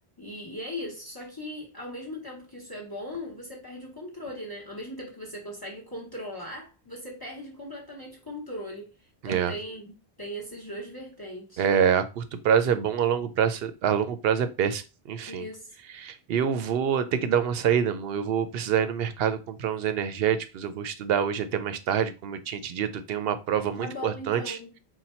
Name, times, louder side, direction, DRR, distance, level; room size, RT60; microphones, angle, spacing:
voice 1, 0.2-8.9 9.2-9.9 10.2-11.6 15.3-15.8 23.8-24.7, left 1 dB, 20° left, 0.9 m, -39 dB
voice 2, 9.2-9.5 11.6-14.8 15.1-15.5 16.0-24.6, right 8 dB, 70° right, 0.8 m, -26 dB
4.1 x 2.2 x 4.2 m
omnidirectional pair, 1.1 m